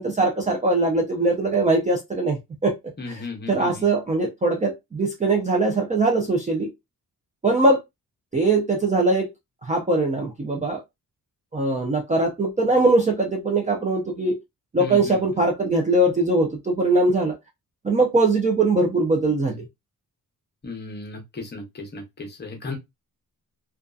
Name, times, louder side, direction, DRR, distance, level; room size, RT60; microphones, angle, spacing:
voice 1, 0.0-2.4 2.6-2.7 3.1-3.2 3.5-6.7 7.4-7.8 8.3-9.3 9.6-10.8 11.5-14.4 14.7-17.3 17.8-19.6, right 2 dB, 20° right, 0.4 m, -21 dB
voice 2, 3.0-3.9 14.8-15.2 20.6-22.8, left 3 dB, 30° left, 0.7 m, -35 dB
2.6 x 2.3 x 2.2 m
wide cardioid pair, 175°, 35 cm